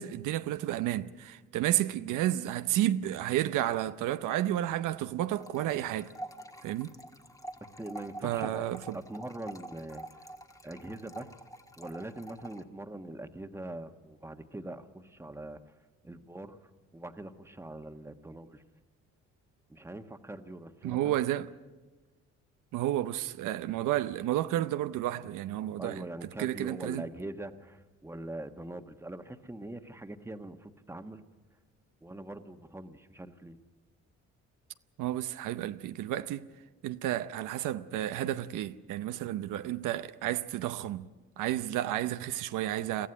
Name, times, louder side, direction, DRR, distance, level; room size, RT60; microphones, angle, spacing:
voice 1, 0.0-6.1 6.6-6.9 8.2-9.0 20.8-21.5 22.7-26.0 26.4-27.0 35.0-36.5 36.8-41.1 41.4-43.1, right 13 dB, 90° right, 0.7 m, -31 dB
sound 1, 5.4-12.6, right 1 dB, 10° left, 1.4 m, -46 dB
voice 2, 7.8-8.6 8.9-10.0 10.6-11.3 11.8-15.6 16.0-16.6 16.9-18.6 19.7-21.2 25.8-31.2 32.0-33.6, right 1 dB, 10° right, 1.3 m, -42 dB
23.0 x 14.5 x 10.0 m
cardioid pair, 90°, 30 cm